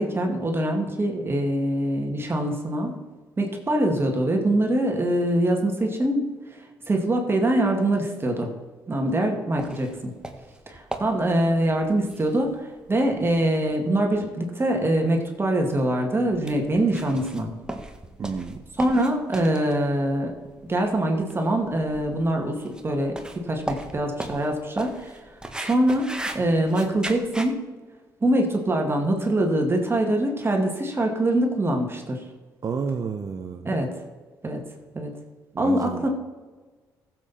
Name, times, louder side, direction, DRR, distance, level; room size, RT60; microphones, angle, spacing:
voice 1, 0.0-3.0 3.4-8.5 8.9-10.1 10.7-17.5 18.8-20.3 20.6-25.2 25.5-27.6 28.2-32.2 33.7-33.9 34.4-34.6 34.9-35.1 35.6-36.1, right 1 dB, 30° right, 2 dB, 2.2 m, -24 dB
sound 1, 9.6-27.5, right 1 dB, 10° right, 1.6 m, -39 dB
voice 2, 18.2-18.6 32.6-33.7 35.5-36.1, right 5 dB, 45° right, 6 dB, 0.9 m, -30 dB
15.0 x 7.7 x 4.3 m, 1.3 s
supercardioid pair, 65°, 8 cm